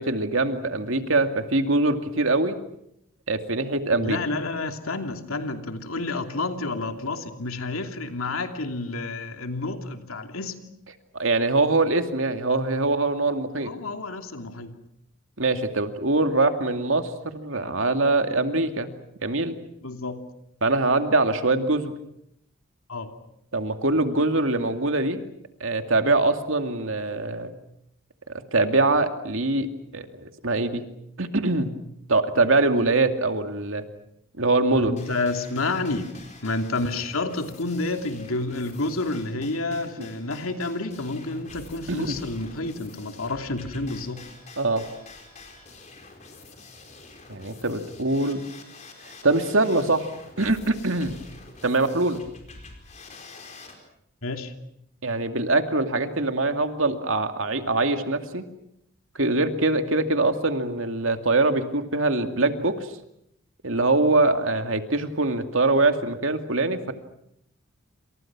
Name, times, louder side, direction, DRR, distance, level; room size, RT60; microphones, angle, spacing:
voice 1, 0.0-2.6 3.3-4.2 11.1-13.7 15.4-18.9 19.2-19.6 20.6-21.9 23.5-25.2 25.6-27.5 28.3-29.7 29.9-30.8 31.2-31.7 32.1-33.8 34.4-35.0 40.0-40.1 41.9-42.2 44.6-44.9 47.3-48.5 49.2-50.1 50.4-51.1 51.6-52.2 55.0-58.5 59.2-63.0 63.6-66.9, right 2 dB, 75° right, 7 dB, 2.4 m, -23 dB
voice 2, 4.0-10.6 13.6-14.7 19.8-20.2 22.9-23.1 34.7-36.0 36.4-44.2 54.2-54.5, left 2 dB, 90° left, 6 dB, 2.9 m, -29 dB
sound 1, 35.0-53.8, left 3 dB, 35° left, 4.7 m, -47 dB
28.5 x 27.0 x 6.1 m, 0.77 s
head